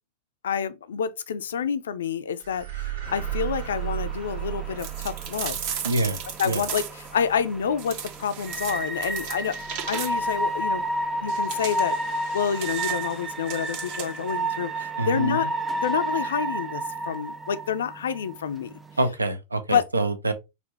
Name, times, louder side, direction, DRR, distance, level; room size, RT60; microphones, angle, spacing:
voice 1, 0.4-5.6 6.4-9.6 9.9-10.9 11.2-15.5 15.8-18.7 19.7-19.8, left 7 dB, 65° left, 0.4 m, -28 dB
sound 1, 2.4-11.0, right 13 dB, 65° right, 1.2 m, -37 dB
sound 2, 3.1-19.0, right 1 dB, 10° right, 0.4 m, -32 dB
sound 3, 4.8-7.2 7.8-10.4 11.3-14.3, right 8 dB, 45° right, 0.8 m, -36 dB
voice 2, 5.8-6.2 6.4-6.6 15.0-15.5 19.0-20.3, right 2 dB, 80° right, 0.6 m, -25 dB
4.2 x 2.6 x 3.1 m
figure-of-eight pair, 90°, 0 cm